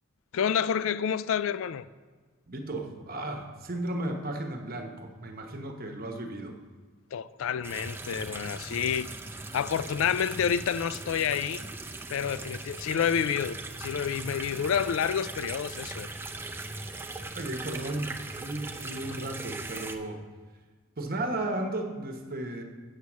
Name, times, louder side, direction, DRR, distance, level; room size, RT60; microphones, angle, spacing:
voice 1, 0.3-1.8 7.1-9.1 9.5-11.6 12.1-16.1, left 8 dB, 75° left, 0.3 m, -29 dB
voice 2, 2.5-6.6 17.3-20.2 21.0-22.6, right 1 dB, 45° right, 1.0 m, -34 dB
sound 1, 7.6-20.0, right 2 dB, 10° right, 0.5 m, -39 dB
8.1 x 6.4 x 7.2 m
head